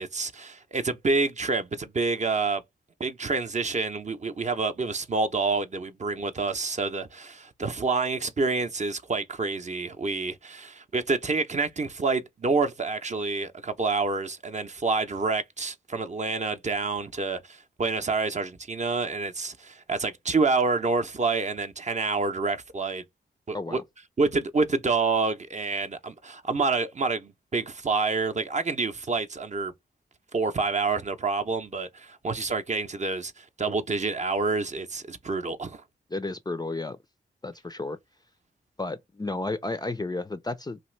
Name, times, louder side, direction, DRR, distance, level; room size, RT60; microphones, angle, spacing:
voice 1, 0.0-2.6 3.0-23.0 23.5-23.8 24.2-29.7 30.3-35.8, right 4 dB, 35° right, 0.6 m, -28 dB
voice 2, 36.1-37.0 37.4-38.0 38.8-40.8, left 2 dB, 20° left, 0.4 m, -32 dB
2.9 x 2.5 x 3.1 m
cardioid pair, 50°, 20 cm